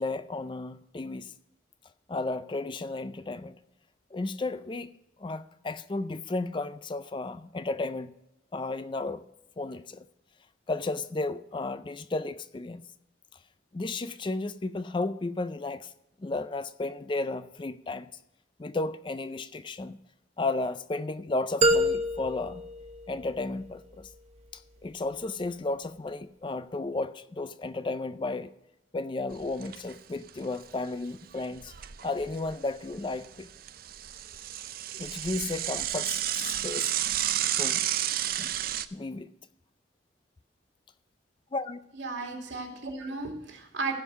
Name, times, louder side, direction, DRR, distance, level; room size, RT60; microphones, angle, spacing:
voice 1, 0.0-1.3 2.1-3.6 4.1-4.9 5.2-8.1 8.5-9.2 9.6-10.0 10.7-12.8 13.7-15.9 16.2-18.1 18.6-20.0 20.4-22.6 23.1-24.1 24.5-28.5 28.9-31.7 32.0-33.5 34.9-36.9 37.6-37.8 38.4-38.5 38.9-39.3 41.5-41.8, left 2 dB, 25° left, 0.4 m, -33 dB
sound 1, 21.6-23.7, equal, 35° right, 0.9 m, -27 dB
Bicycle / Mechanisms, 29.3-29.9 30.3-30.4 30.6-30.7 31.4-32.6 32.9-38.9, right 12 dB, 50° right, 0.5 m, -31 dB
voice 2, 41.9-43.9, right 3 dB, 80° right, 2.5 m, -35 dB
15.5 x 5.4 x 6.1 m
head